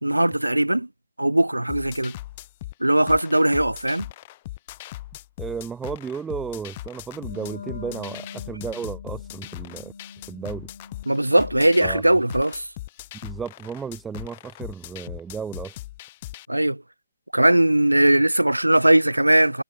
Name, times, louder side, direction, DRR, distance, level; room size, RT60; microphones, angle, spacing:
voice 1, 0.0-0.9 1.2-2.2 2.8-4.1 11.1-12.7 16.5-16.8 17.3-19.6, right 1 dB, 85° right, 0.4 m, -19 dB
sound 1, 1.7-16.5, left 16 dB, 30° left, 1.1 m, -39 dB
voice 2, 5.4-9.9 10.3-10.7 11.8-12.0 13.2-15.8, right 6 dB, 5° right, 0.7 m, -33 dB
Wind instrument woodwind instrument, 7.1-12.2, left 5 dB, 60° left, 1.3 m, -43 dB
figure-of-eight pair, 140°, 0 cm